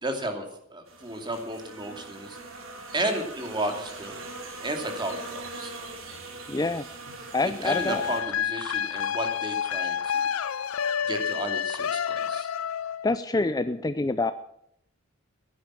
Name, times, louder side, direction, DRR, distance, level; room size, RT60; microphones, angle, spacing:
voice 1, 0.0-0.4 0.7-2.7 2.9-4.2 4.6-6.2 7.6-10.3 11.1-12.5, right 1 dB, 20° right, 5 dB, 2.5 m, -33 dB
sound 1, 0.9-8.2, right 2 dB, 70° right, 3.1 m, -41 dB
voice 2, 6.5-6.8 7.3-8.0 13.0-14.3, left 3 dB, 20° left, 11 dB, 0.5 m, -26 dB
sound 2, 7.6-13.2, left 8 dB, 85° left, 0.5 m, -29 dB
15.5 x 10.5 x 7.5 m, 0.72 s
head